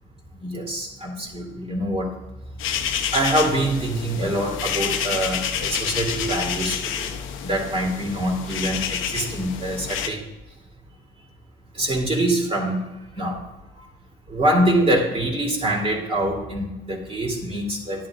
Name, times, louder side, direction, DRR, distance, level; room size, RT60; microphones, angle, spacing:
voice 1, 0.4-2.1 3.1-7.1 7.4-10.2 11.7-13.4 14.3-18.1, right 1 dB, 30° right, -1 dB, 3.1 m, -24 dB
sound 1, 2.6-10.1, left 8 dB, 85° left, 0.8 m, -28 dB
12.0 x 10.0 x 2.5 m, 1.0 s
cardioid pair, 90°, 20 cm